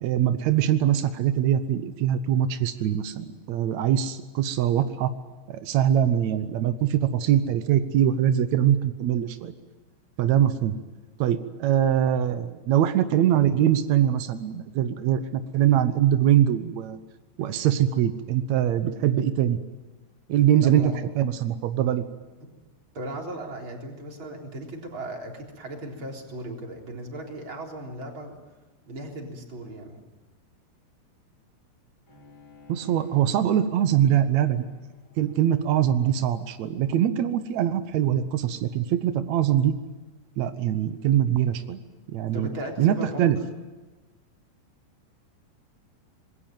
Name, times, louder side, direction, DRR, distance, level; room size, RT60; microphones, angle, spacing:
voice 1, 0.0-5.1 5.5-9.5 10.2-10.7 11.2-17.0 17.4-19.6 20.3-20.8 21.2-22.0 32.7-34.6 35.2-39.7 40.4-41.8 42.1-42.5 42.8-43.4, right 10 dB, 90° right, 10 dB, 1.5 m, -23 dB
voice 2, 20.6-21.0 22.9-28.4 28.9-30.0 42.3-43.3, right 1 dB, 30° right, 1 dB, 4.1 m, -37 dB
Bowed string instrument, 32.1-37.4, left 3 dB, 25° left, 5.5 m, -54 dB
25.5 x 21.5 x 9.1 m, 1.2 s
omnidirectional pair, 4.8 m